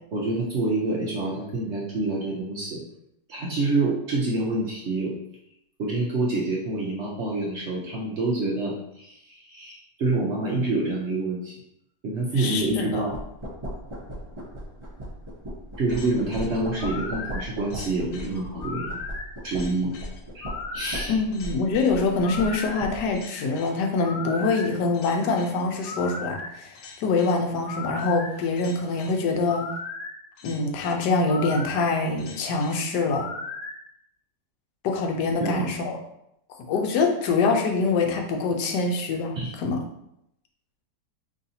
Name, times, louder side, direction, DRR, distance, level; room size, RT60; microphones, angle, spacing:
voice 1, 0.1-2.8 3.3-5.2 5.8-11.5 12.0-13.1 15.8-19.0 19.4-19.9 20.3-20.5 20.7-21.2 35.3-35.6 39.3-39.5, right 2 dB, 60° right, -3 dB, 0.7 m, -27 dB
voice 2, 12.4-13.1 21.1-29.7 30.4-33.3 34.8-36.0 36.6-39.8, left 3 dB, 85° left, 2 dB, 1.3 m, -25 dB
sound 1, 13.1-23.2, equal, 35° right, 0.5 m, -37 dB
sound 2, 15.9-33.8, left 4 dB, 70° left, 1.0 m, -37 dB
3.9 x 3.2 x 2.7 m, 0.78 s
omnidirectional pair, 1.7 m